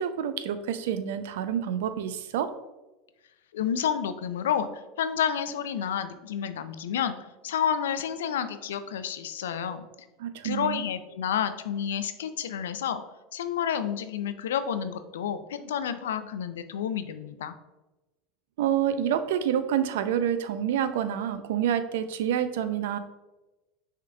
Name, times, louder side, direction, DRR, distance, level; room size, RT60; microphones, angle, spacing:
voice 1, 0.0-2.5 10.2-10.8 18.6-23.0, right 9 dB, 75° right, 11 dB, 0.4 m, -28 dB
voice 2, 3.5-7.2 7.4-9.8 10.4-13.0 13.3-17.5, left 8 dB, 85° left, 11 dB, 0.4 m, -30 dB
6.1 x 3.8 x 2.2 m, 1.1 s
hypercardioid pair, 90°, 0 cm